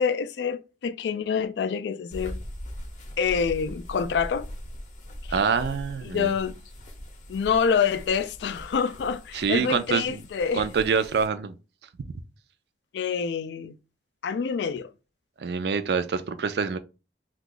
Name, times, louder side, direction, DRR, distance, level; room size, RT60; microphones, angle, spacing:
voice 1, 0.0-2.4 3.2-4.5 5.3-5.4 6.0-6.5 7.3-10.7 12.9-13.8 14.2-14.9, left 6 dB, 70° left, 0.3 m, -26 dB
sound 1, 2.1-11.3, equal, 45° left, 0.7 m, -41 dB
voice 2, 5.3-6.3 9.3-10.2 10.5-11.5 15.4-16.8, right 5 dB, 65° right, 0.4 m, -26 dB
2.8 x 2.3 x 3.8 m
head